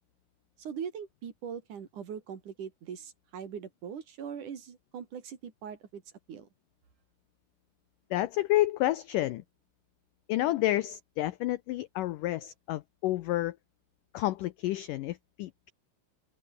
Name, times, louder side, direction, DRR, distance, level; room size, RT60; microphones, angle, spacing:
voice 1, 0.6-6.0 6.3-6.5, right 7 dB, 55° right, 3.6 m, -41 dB
voice 2, 8.1-9.4 10.3-13.6 14.1-15.7, left 15 dB, 85° left, 1.8 m, -30 dB
open air
omnidirectional pair, 4.8 m